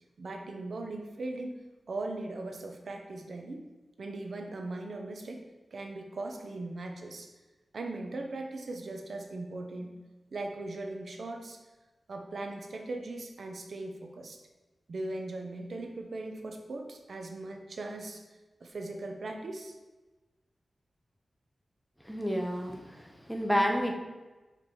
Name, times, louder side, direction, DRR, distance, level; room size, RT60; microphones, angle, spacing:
voice 1, 0.2-1.6 1.9-3.6 4.0-5.4 5.7-7.3 7.7-9.9 10.3-11.6 12.1-14.4 14.9-18.2 18.6-19.8, right 2 dB, 75° right, 3 dB, 0.9 m, -39 dB
voice 2, 22.0-23.9, equal, ahead, 2 dB, 1.1 m, -30 dB
5.1 x 5.0 x 5.4 m, 1.2 s
wide cardioid pair, 75°, 0 cm